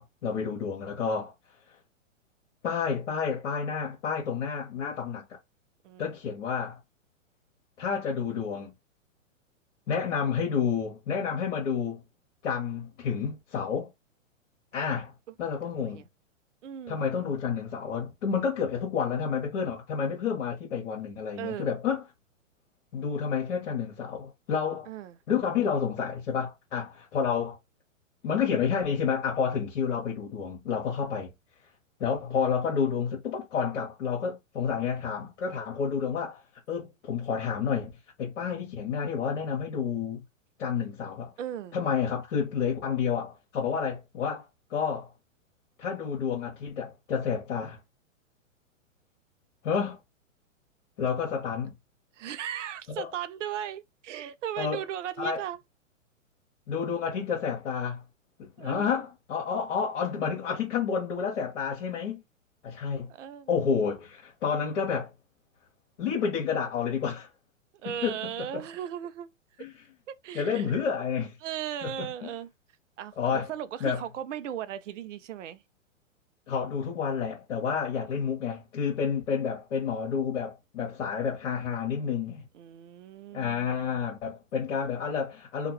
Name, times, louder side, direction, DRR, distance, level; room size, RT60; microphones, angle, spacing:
voice 1, 0.0-1.3 2.6-5.4 6.0-6.8 7.8-8.7 9.9-12.0 12.4-13.9 14.7-15.1 15.4-16.0 16.9-22.0 22.9-24.9 25.3-27.6 28.2-31.3 32.0-37.9 38.2-40.2 40.6-41.3 41.7-44.4 44.7-45.1 45.8-47.8 49.6-50.0 51.0-51.7 52.9-53.1 54.6-54.8 55.2-55.4 56.7-58.0 58.4-62.2 62.6-63.1 63.5-65.1 66.0-67.3 68.0-68.6 69.6-69.7 70.3-71.4 71.8-72.3 73.2-73.5 73.8-74.0 76.5-82.4 83.3-85.7, left 6 dB, 60° left, 1.3 m, -30 dB
voice 2, 16.6-17.0 21.4-21.7 24.9-25.1 41.4-41.8 52.2-55.6 58.6-59.0 63.1-63.6 67.8-69.3 70.1-70.8 71.4-72.5 73.0-75.6 82.5-83.9, right 10 dB, 65° right, 0.6 m, -37 dB
2.9 x 2.4 x 3.0 m
hypercardioid pair, 120°, 40 cm